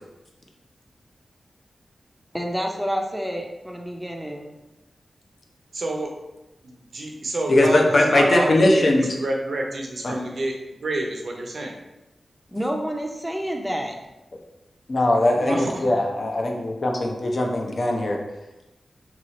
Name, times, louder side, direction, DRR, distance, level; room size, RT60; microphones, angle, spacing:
voice 1, 2.3-4.5 12.5-14.0, equal, 5° right, 1 dB, 0.5 m, -28 dB
voice 2, 5.7-6.1 6.6-10.5 10.8-11.7 15.3-15.7, right 1 dB, 75° right, 1 dB, 0.6 m, -28 dB
voice 3, 7.5-9.1 10.0-10.1 14.9-18.2, left 1 dB, 60° left, 1 dB, 0.6 m, -20 dB
3.0 x 2.3 x 4.0 m, 0.99 s
cardioid pair, 55°, 0 cm